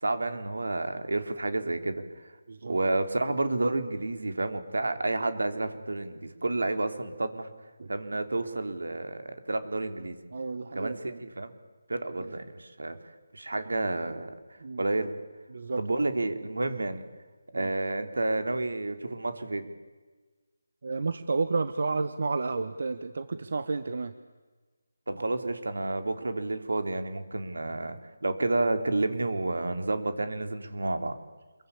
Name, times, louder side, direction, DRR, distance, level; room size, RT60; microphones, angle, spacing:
voice 1, 0.0-2.0 2.6-7.5 7.9-10.2 10.7-11.5 11.9-13.0 13.3-14.4 14.8-15.1 15.8-17.0 17.5-19.7 25.1-31.2, right 2 dB, 85° right, 8 dB, 3.5 m, -30 dB
voice 2, 10.3-11.2 12.2-12.3 14.6-14.8 15.5-15.8 16.7-16.8 17.5-17.7 20.8-24.1, right 4 dB, 60° right, 11 dB, 1.4 m, -31 dB
27.5 x 22.5 x 8.7 m, 1.3 s
figure-of-eight pair, 165°, 0 cm